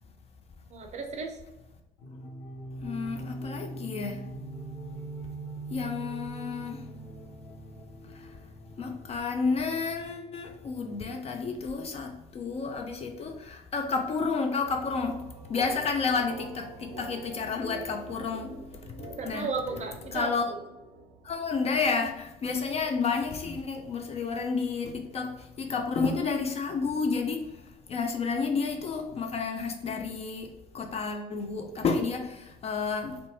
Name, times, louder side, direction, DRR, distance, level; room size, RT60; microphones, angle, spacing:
voice 1, 0.7-1.4 19.2-20.6, right 4 dB, 35° right, 3 dB, 0.5 m, -34 dB
sound 1, 2.0-11.2, right 2 dB, 80° left, 0.6 m, -42 dB
voice 2, 2.8-4.2 5.7-6.9 8.8-15.2 15.5-18.5 19.2-19.5 20.1-20.4 21.2-27.6 27.9-33.2, left 4 dB, 30° left, 4 dB, 0.4 m, -31 dB
sound 2, 14.7-22.1, right 3 dB, 85° right, 0.4 m, -45 dB
2.5 x 2.2 x 2.7 m, 0.92 s
hypercardioid pair, 55°, 20 cm